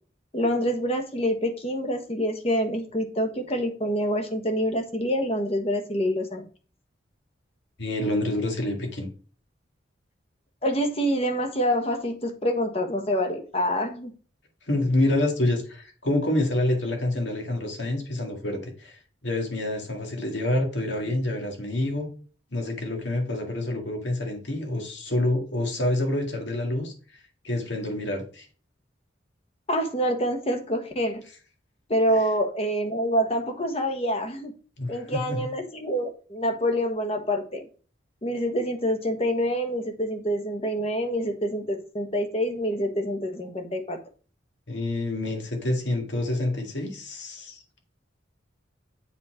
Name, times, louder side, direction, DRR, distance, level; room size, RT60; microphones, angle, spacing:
voice 1, 0.3-6.4 10.6-14.1 29.7-31.2 31.9-34.5 34.9-37.7 38.2-44.0, equal, 30° left, 5 dB, 1.2 m, -26 dB
voice 2, 7.8-9.1 14.7-22.1 22.5-26.9 27.4-28.5 34.8-35.4 44.7-47.6, left 1 dB, 70° left, 3 dB, 2.1 m, -27 dB
7.4 x 4.2 x 4.9 m, 0.38 s
head